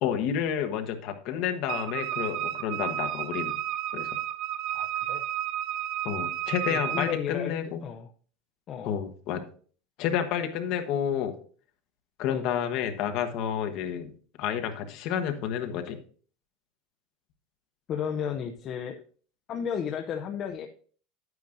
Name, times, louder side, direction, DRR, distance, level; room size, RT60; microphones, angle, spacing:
voice 1, 0.0-3.6 3.9-4.2 6.0-7.8 8.8-9.4 10.0-11.3 12.2-14.1 14.4-16.0, left 9 dB, 50° left, 6 dB, 1.1 m, -30 dB
Wind instrument woodwind instrument, 1.7-7.2, right 12 dB, 45° right, 0.7 m, -32 dB
voice 2, 4.7-5.2 6.7-7.5 7.8-8.1 8.7-9.0 12.3-12.4 17.9-19.0 19.5-20.7, left 8 dB, 30° left, 4 dB, 0.5 m, -33 dB
10.5 x 9.2 x 2.6 m, 0.43 s
cardioid pair, 165°, 0 cm